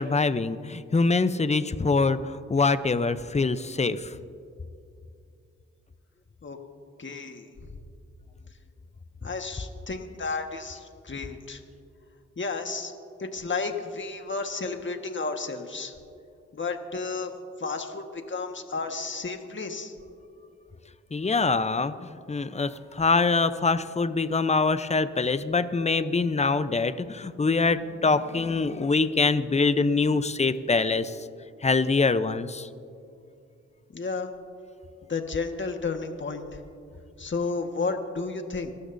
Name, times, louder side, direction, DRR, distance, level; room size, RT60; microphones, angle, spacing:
voice 1, 0.0-4.1 21.1-31.2 31.6-32.7, left 4 dB, 25° left, 13 dB, 0.7 m, -24 dB
voice 2, 7.0-7.5 9.2-11.6 12.4-12.9 13.2-15.9 16.5-17.3 17.6-19.9 33.9-34.3 35.1-36.5 37.2-38.7, left 4 dB, 40° left, 5 dB, 1.6 m, -32 dB
25.5 x 12.5 x 2.7 m, 2.5 s
cardioid pair, 55°, 29 cm